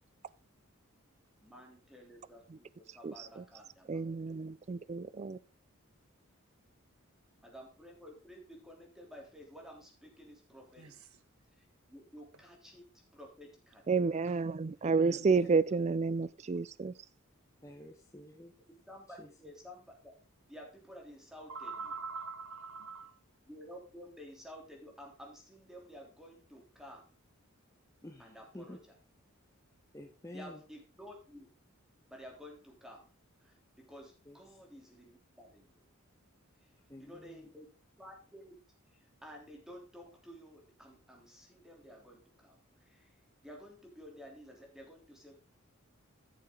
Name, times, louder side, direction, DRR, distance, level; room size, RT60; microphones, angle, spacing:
voice 1, 1.4-4.0 7.4-10.9 11.6-12.9 13.1-13.9 15.2-15.6 18.9-20.1 20.5-21.9 23.4-27.1 28.2-28.9 30.3-31.5 32.1-33.1 33.4-35.8 37.0-37.7 38.0-38.6 38.9-43.1 43.4-45.5, equal, ahead, 3.2 m, -52 dB
voice 2, 3.0-3.4 3.9-5.4 13.9-16.9, right 4 dB, 30° right, 0.4 m, -30 dB
voice 3, 10.8-11.2 14.3-14.4 14.8-15.3 21.5-23.2, right 4 dB, 80° right, 1.1 m, -44 dB
voice 4, 15.1-15.6 17.6-18.5 19.2-19.3 28.0-28.8 29.9-30.6 34.2-34.4 36.9-37.5, left 1 dB, 15° left, 1.1 m, -50 dB
13.5 x 7.2 x 3.8 m
head